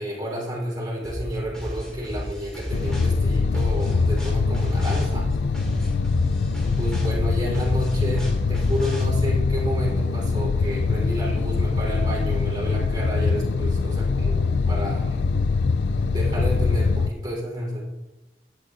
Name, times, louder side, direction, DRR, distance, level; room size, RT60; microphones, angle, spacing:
voice 1, 0.0-5.3 6.8-15.2 16.1-17.8, equal, 25° right, -5 dB, 4.0 m, -30 dB
sound 1, 1.0-9.0, equal, 5° left, 3.1 m, -33 dB
sound 2, 2.7-17.1, left 4 dB, 75° left, 0.4 m, -23 dB
14.0 x 9.2 x 2.7 m, 1.1 s
head